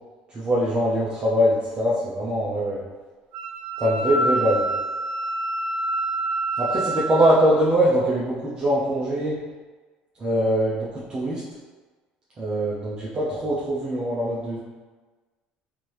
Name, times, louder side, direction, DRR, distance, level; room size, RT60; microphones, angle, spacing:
voice 1, 0.3-2.8 3.8-4.6 6.6-9.4 10.2-11.4 12.4-14.6, equal, 25° right, -8 dB, 0.6 m, -22 dB
Wind instrument woodwind instrument, 3.3-7.4, right 2 dB, 75° right, 0.6 m, -27 dB
3.3 x 2.7 x 3.0 m, 1.3 s
cardioid pair, 125°, 3 cm